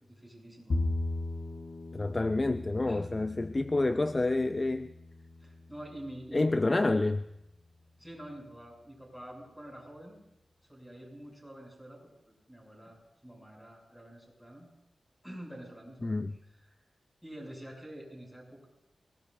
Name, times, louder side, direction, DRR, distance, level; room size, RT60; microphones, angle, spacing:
voice 1, 0.1-0.8 2.9-3.1 5.4-6.9 8.0-10.2 10.7-14.7 15.2-16.2 16.5-16.8 17.2-18.7, right 1 dB, ahead, -2 dB, 7.0 m, -47 dB
Bowed string instrument, 0.7-7.0, left 2 dB, 50° left, 1.1 m, -38 dB
voice 2, 1.9-4.9 6.3-7.2 16.0-16.3, left 2 dB, 30° left, 10 dB, 0.5 m, -28 dB
28.0 x 18.5 x 2.7 m, 0.84 s
wide cardioid pair, 85°, 0 cm